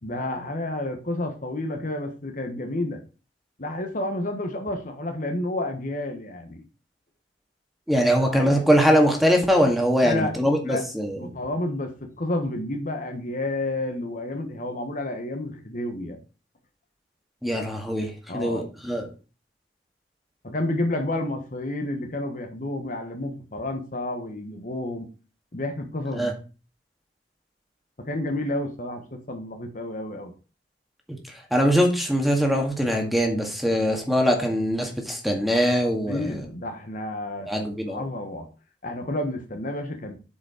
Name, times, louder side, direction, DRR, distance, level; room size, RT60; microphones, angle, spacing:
voice 1, 0.0-3.0 3.6-6.6 8.0-8.6 10.0-10.3 10.7-10.8 11.2-16.2 18.3-18.6 20.4-25.1 25.5-26.3 28.0-30.3 35.5-35.7 36.1-38.5 38.8-40.2, left 1 dB, 45° left, 5 dB, 1.3 m, -30 dB
voice 2, 7.9-11.2 17.4-19.1 26.1-26.3 31.1-31.2 31.5-36.4 37.5-38.0, equal, ahead, 2 dB, 1.8 m, -22 dB
8.5 x 5.1 x 5.0 m, 0.34 s
head